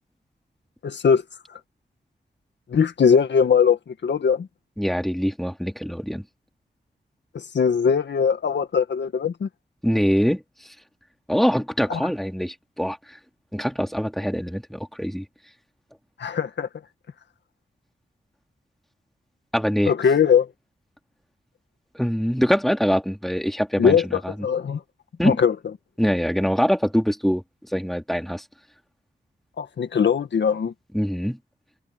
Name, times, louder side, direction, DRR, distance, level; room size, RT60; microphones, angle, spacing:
voice 1, 0.8-1.2 2.7-4.5 7.3-9.5 11.9-12.0 16.2-16.7 19.9-20.5 23.8-24.8 25.2-25.6 29.6-30.7, left 6 dB, 80° left, 1.8 m, -20 dB
voice 2, 4.8-6.2 9.8-10.4 11.3-13.0 13.5-15.3 19.5-19.9 21.9-24.3 25.2-25.4 26.0-27.4 27.7-28.4 30.9-31.4, equal, ahead, 3.6 m, -23 dB
cardioid pair, 55°, 18 cm